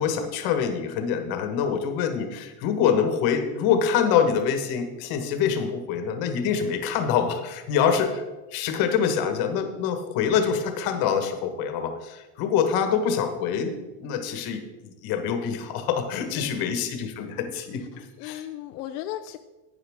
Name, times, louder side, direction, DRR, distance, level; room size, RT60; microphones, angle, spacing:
voice 1, 0.0-8.2 8.5-18.5, left 7 dB, 50° left, 7 dB, 1.4 m, -25 dB
voice 2, 16.3-16.8 18.2-19.4, left 13 dB, 85° left, 7 dB, 0.7 m, -36 dB
11.5 x 9.0 x 3.6 m, 1.1 s
supercardioid pair, 140°, 47 cm